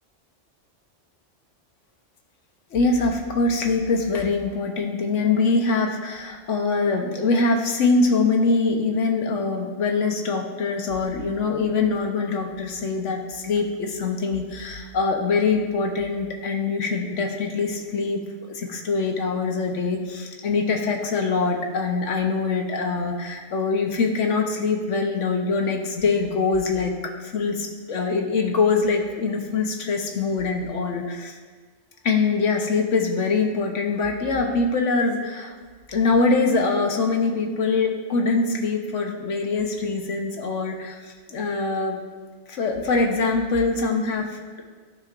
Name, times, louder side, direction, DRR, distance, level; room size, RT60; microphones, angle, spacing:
voice 1, 2.7-18.2 18.5-26.9 27.2-31.3 32.0-35.5 35.9-42.0 42.5-44.6, left 4 dB, 85° left, 2 dB, 1.3 m, -23 dB
14.5 x 5.6 x 2.5 m, 1.5 s
omnidirectional pair, 1.2 m